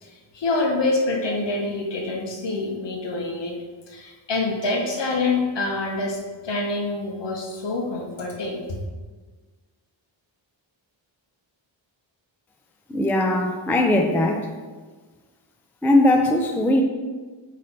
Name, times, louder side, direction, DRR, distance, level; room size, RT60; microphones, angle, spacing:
voice 1, 0.0-3.5 3.9-6.2 6.4-8.6, left 3 dB, 60° left, 0 dB, 1.3 m, -26 dB
voice 2, 12.9-14.5 15.8-16.8, left 1 dB, 5° left, 2 dB, 0.3 m, -19 dB
8.3 x 3.3 x 4.1 m, 1.3 s
wide cardioid pair, 175°, 47 cm